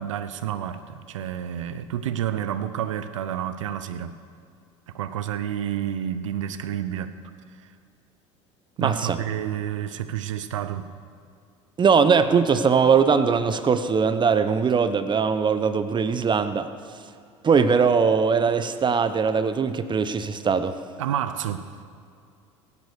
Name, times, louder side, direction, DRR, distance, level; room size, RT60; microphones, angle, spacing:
voice 1, 0.0-4.1 4.9-7.1 8.8-10.9 21.0-21.8, right 10 dB, 85° right, 0.6 m, -29 dB
voice 2, 8.8-9.2 11.8-16.7 17.4-20.8, right 6 dB, 30° right, 0.9 m, -21 dB
17.0 x 9.6 x 6.7 m
hypercardioid pair, 75°, 16 cm